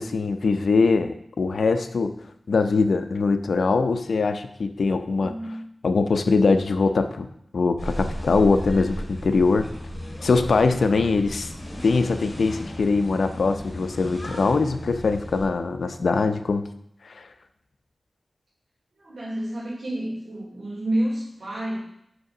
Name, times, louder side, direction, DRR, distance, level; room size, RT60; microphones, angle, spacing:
voice 1, 0.0-2.1 2.5-5.3 5.8-7.3 7.5-9.7 10.2-11.5 11.8-16.6 17.0-17.3, left 4 dB, 85° left, 9 dB, 0.6 m, -22 dB
voice 2, 5.2-5.7 19.0-21.8, right 1 dB, 75° right, -8 dB, 3.0 m, -29 dB
sound 1, 7.8-15.5, equal, 45° left, 3.7 m, -35 dB
8.2 x 6.1 x 4.9 m, 0.74 s
wide cardioid pair, 105°, 0 cm